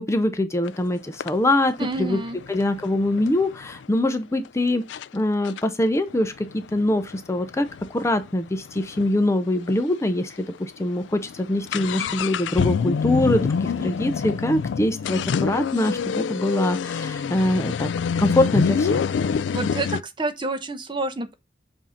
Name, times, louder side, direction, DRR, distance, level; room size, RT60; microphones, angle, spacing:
voice 1, 0.0-2.2 2.5-4.8 5.1-17.9 18.2-19.1, left 1 dB, 15° left, 0.5 m, -23 dB
sound 1, 0.6-0.8 1.2-3.8 4.4-4.5 4.9-5.1 5.4-9.1 9.4-9.5 9.7-9.8 10.4-10.6 10.9-20.0, left 6 dB, 90° left, 0.3 m, -27 dB
voice 2, 1.8-2.4 19.5-21.3, right 2 dB, 25° right, 0.7 m, -28 dB
7.5 x 2.7 x 5.6 m
head